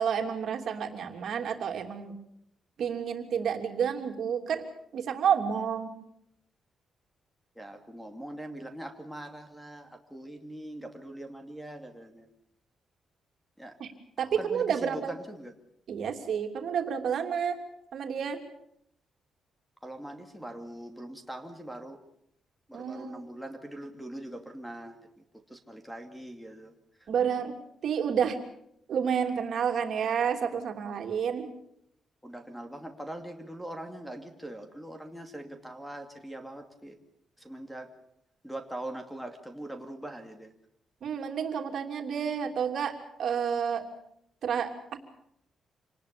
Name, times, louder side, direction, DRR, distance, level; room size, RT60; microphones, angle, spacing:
voice 1, 0.0-2.1 2.8-4.6 4.9-5.9 13.8-13.9 14.2-15.1 15.9-17.6 17.9-18.4 22.7-23.2 27.1-27.6 27.8-28.4 28.9-31.5 41.0-43.8 44.4-45.0, right 7 dB, 65° right, 4 dB, 3.1 m, -30 dB
voice 2, 7.6-12.3 13.6-13.8 14.4-15.5 19.8-22.0 22.7-26.7 27.0-27.1 32.2-37.0 37.4-37.9 38.4-40.5, right 1 dB, ahead, 6 dB, 2.5 m, -42 dB
27.0 x 19.5 x 6.9 m, 0.72 s
cardioid pair, 130°, 0 cm